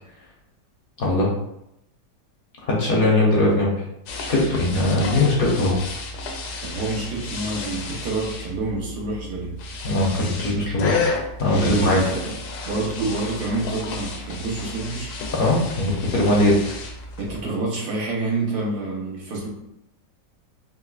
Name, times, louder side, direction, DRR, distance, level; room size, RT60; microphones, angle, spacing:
voice 1, 1.0-1.3 2.7-3.7 4.2-5.8 9.8-11.1 11.4-12.0 15.3-16.7, left 1 dB, 50° left, -3 dB, 0.7 m, -20 dB
sound 1, 4.1-17.4, left 3 dB, 75° left, 1.1 m, -32 dB
voice 2, 6.6-9.6 11.5-12.4 12.6-15.1 17.2-19.5, right 3 dB, 75° right, -4 dB, 1.6 m, -27 dB
5.3 x 2.1 x 2.4 m, 0.82 s
omnidirectional pair, 1.8 m